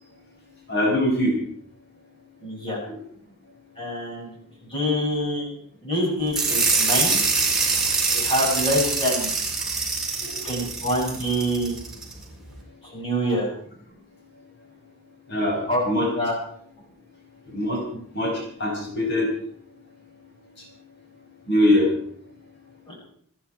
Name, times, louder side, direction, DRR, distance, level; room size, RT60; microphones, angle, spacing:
voice 1, 0.7-1.3 10.2-10.3 15.3-15.6 15.9-16.1 17.5-17.8 18.2-18.3 18.6-19.3 21.5-21.9, left 1 dB, 50° left, -2 dB, 5.2 m, -21 dB
voice 2, 2.4-2.8 3.8-4.4 4.7-5.5 5.8-7.2 8.1-9.3 10.4-11.8 12.8-13.5 15.7-15.8 16.1-16.3 22.9-23.0, equal, 25° left, -3 dB, 7.0 m, -25 dB
sound 1, 6.3-12.1, right 4 dB, ahead, 4.4 m, -24 dB
28.0 x 10.5 x 4.6 m, 0.62 s
head